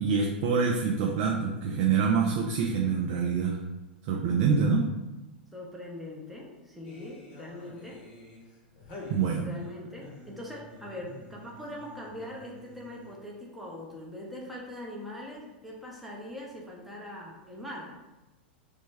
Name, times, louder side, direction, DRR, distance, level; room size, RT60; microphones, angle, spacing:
voice 1, 0.0-3.6 4.0-4.9 9.1-9.5, right 5 dB, 50° right, 0 dB, 0.4 m, -26 dB
voice 2, 5.5-8.0 9.4-17.9, left 1 dB, ahead, -4 dB, 0.7 m, -42 dB
sound 1, 6.8-13.4, left 1 dB, 40° left, 0.8 m, -48 dB
3.2 x 2.1 x 3.2 m, 1.0 s
figure-of-eight pair, 90°, 5 cm